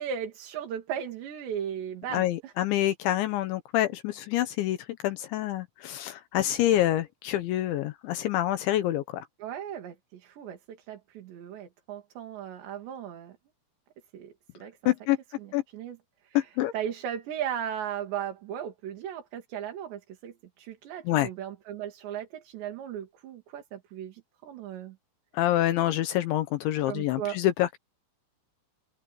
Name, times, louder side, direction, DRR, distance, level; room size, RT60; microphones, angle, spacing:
voice 1, 0.0-2.5 9.4-13.4 14.1-14.9 15.4-16.0 16.2-25.0 26.9-27.4, right 9 dB, 65° right, 4.8 m, -37 dB
voice 2, 2.1-4.8 5.0-9.2 14.9-15.2 15.5-15.6 16.3-16.7 21.1-21.3 25.3-27.8, left 14 dB, 75° left, 3.3 m, -26 dB
omnidirectional pair, 5.5 m